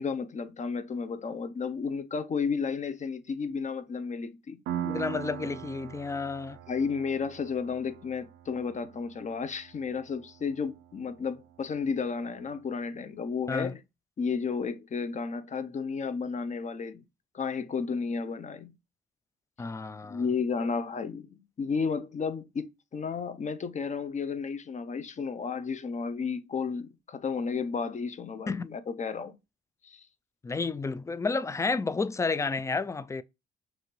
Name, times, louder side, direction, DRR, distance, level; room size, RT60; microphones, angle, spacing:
voice 1, 0.0-4.6 6.7-13.8 14.2-17.0 17.3-18.7 20.0-29.4 29.8-30.0, left 5 dB, 35° left, 0.7 m, -32 dB
Piano, 4.7-12.0, right 10 dB, 90° right, 0.6 m, -41 dB
voice 2, 4.8-6.6 13.5-13.7 19.6-20.2 28.5-28.7 30.4-33.2, left 4 dB, 15° left, 0.3 m, -31 dB
6.1 x 2.5 x 3.1 m
cardioid pair, 90°, 20 cm